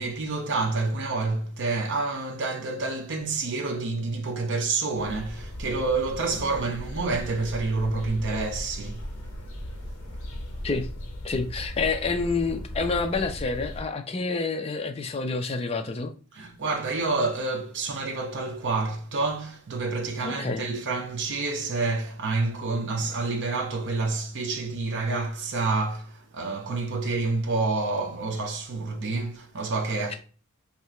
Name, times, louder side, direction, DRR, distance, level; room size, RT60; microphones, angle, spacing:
voice 1, 0.0-9.1 9.3-9.4 9.7-9.9 10.3-10.4 16.3-30.2, right 3 dB, 55° right, 0.6 m, -28 dB
sound 1, 5.0-13.8, equal, 60° left, 0.7 m, -37 dB
voice 2, 11.2-16.1 20.2-20.7, left 4 dB, 25° left, 0.4 m, -28 dB
2.8 x 2.4 x 4.2 m
head